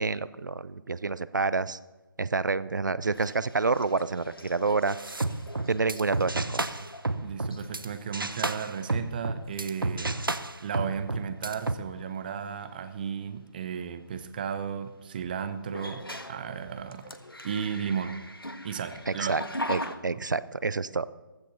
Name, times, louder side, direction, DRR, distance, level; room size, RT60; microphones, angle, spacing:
voice 1, 0.0-1.8 2.2-5.0 5.7-6.7 19.1-19.4 19.7-21.1, right 4 dB, 60° right, 17 dB, 0.5 m, -28 dB
sound 1, 3.0-7.1 7.5-7.9 8.9-9.0 9.5-9.9 10.2-10.5 12.5-12.6 15.6-20.0, left 1 dB, 85° left, 1.6 m, -41 dB
sound 2, 4.9-7.8 8.1-11.7, right 2 dB, 75° right, 1.0 m, -31 dB
voice 2, 7.2-10.2 10.6-17.1 17.4-18.2 18.6-19.4, right 7 dB, 25° right, 10 dB, 0.8 m, -34 dB
15.5 x 13.5 x 4.2 m, 1.2 s
figure-of-eight pair, 150°, 12 cm